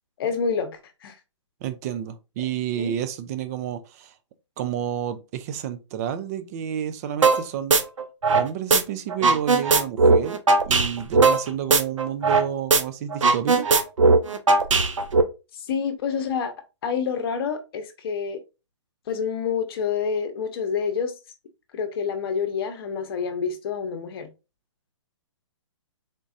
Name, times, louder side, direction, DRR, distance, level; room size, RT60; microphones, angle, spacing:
voice 1, 0.2-1.1 2.8-2.9 15.5-16.5 16.8-18.4 19.1-21.1 21.7-24.3, left 6 dB, 50° left, 1.0 m, -28 dB
voice 2, 1.6-4.1 4.6-7.8 8.3-10.4 10.7-13.7, right 9 dB, 30° right, 0.5 m, -30 dB
sound 1, 7.2-7.4 7.7-8.8 9.1-12.4 12.7-12.8 13.1-15.2, right 4 dB, 90° right, 0.7 m, -18 dB
3.9 x 3.7 x 2.6 m
hypercardioid pair, 140°, 16 cm